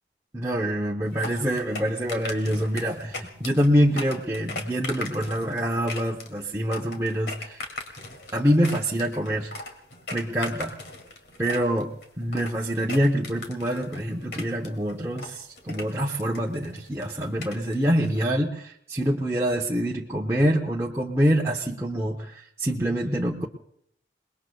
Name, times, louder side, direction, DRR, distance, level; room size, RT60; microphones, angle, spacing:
voice 1, 0.3-7.6 8.3-9.5 10.1-10.7 11.4-11.9 12.2-22.3 22.6-23.5, equal, 15° right, -2 dB, 0.8 m, -25 dB
sound 1, 1.1-18.2, left 2 dB, 70° left, 2.5 m, -39 dB
28.5 x 20.0 x 2.3 m, 0.69 s
head